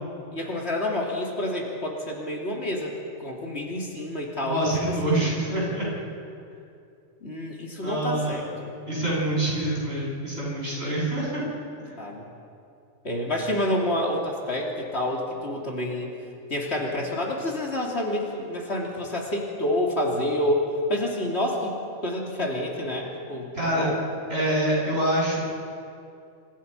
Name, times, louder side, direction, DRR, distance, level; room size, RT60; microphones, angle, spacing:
voice 1, 0.3-5.3 7.2-8.7 12.0-12.2 13.0-16.1 16.5-21.8 22.0-24.0, left 1 dB, 55° left, -1 dB, 3.4 m, -28 dB
voice 2, 4.4-5.9 7.8-8.5 8.9-11.4 11.8-12.0 23.5-23.9 24.3-25.4, right 1 dB, 55° right, -5 dB, 8.2 m, -26 dB
28.0 x 25.5 x 5.6 m, 2.6 s
omnidirectional pair, 1.3 m